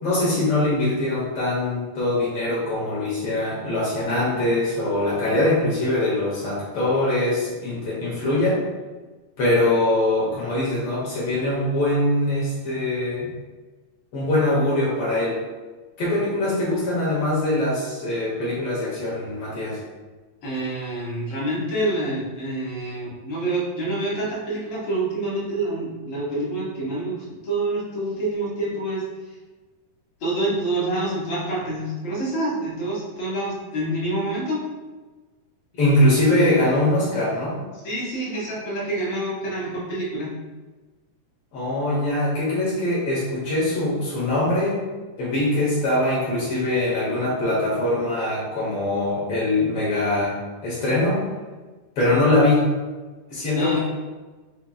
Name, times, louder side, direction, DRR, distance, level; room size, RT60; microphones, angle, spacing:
voice 1, 0.0-8.6 9.4-13.3 14.1-15.4 16.0-19.8 35.7-37.6 41.5-44.8 45.2-50.3 50.6-51.2 52.0-52.7 53.3-53.8, left 1 dB, 70° left, -6 dB, 1.3 m, -22 dB
voice 2, 20.4-29.0 30.2-34.6 37.8-40.3 53.5-53.8, right 1 dB, 50° left, -6 dB, 1.9 m, -27 dB
6.6 x 2.8 x 2.3 m, 1.3 s
omnidirectional pair, 3.9 m